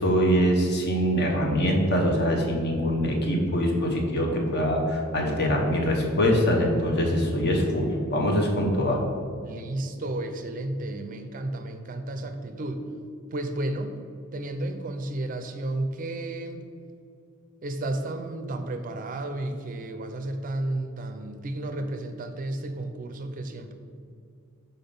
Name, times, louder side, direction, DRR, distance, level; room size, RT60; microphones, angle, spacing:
voice 1, 0.0-9.0, equal, 50° left, 1 dB, 1.0 m, -23 dB
voice 2, 9.4-12.9 13.3-14.0 14.3-16.6 17.6-23.7, right 1 dB, 40° right, 8 dB, 0.4 m, -32 dB
5.9 x 4.0 x 5.3 m, 2.3 s
head